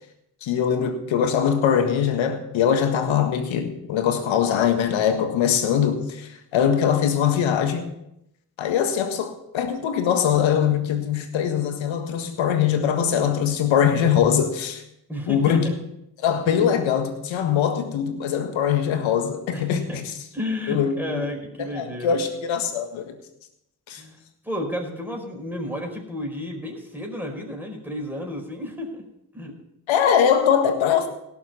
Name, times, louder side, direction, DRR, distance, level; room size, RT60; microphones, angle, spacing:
voice 1, 0.4-7.9 8.6-14.8 15.3-15.7 16.2-20.0 20.7-21.2 21.6-23.2 23.9-24.0 29.9-31.1, left 8 dB, 70° left, 1.7 m, -22 dB
voice 2, 15.1-15.8 16.4-16.6 19.5-20.0 20.3-22.2 24.0-24.2 24.4-29.0 29.3-29.5, left 1 dB, 5° right, 4.8 m, -32 dB
17.0 x 7.2 x 5.6 m
hypercardioid pair, 40°, 48 cm